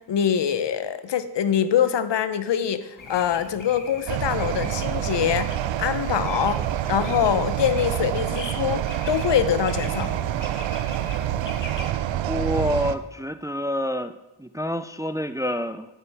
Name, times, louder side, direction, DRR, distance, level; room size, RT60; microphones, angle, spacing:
voice 1, 0.1-6.6 6.9-10.1, left 9 dB, 70° left, 12 dB, 0.8 m, -24 dB
sound 1, 3.0-11.9, left 3 dB, 45° left, 1.7 m, -41 dB
sound 2, 4.1-13.0, right 12 dB, 85° right, 0.6 m, -27 dB
voice 2, 12.3-14.1 14.4-15.9, equal, 10° right, 11 dB, 0.4 m, -27 dB
10.5 x 8.7 x 3.5 m, 0.97 s
cardioid pair, 55°, 45 cm